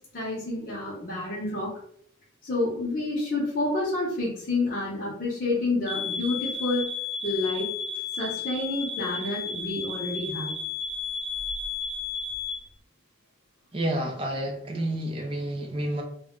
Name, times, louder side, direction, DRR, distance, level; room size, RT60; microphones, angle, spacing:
voice 1, 0.0-1.8 2.4-6.9 7.2-7.7 8.2-10.6, left 2 dB, 45° left, -7 dB, 0.7 m, -29 dB
smoke alarm piep piep, 5.9-12.6, left 5 dB, 80° right, 0.8 m, -33 dB
voice 2, 13.7-16.0, right 1 dB, 30° right, 1 dB, 0.5 m, -29 dB
2.2 x 2.1 x 3.6 m, 0.65 s
head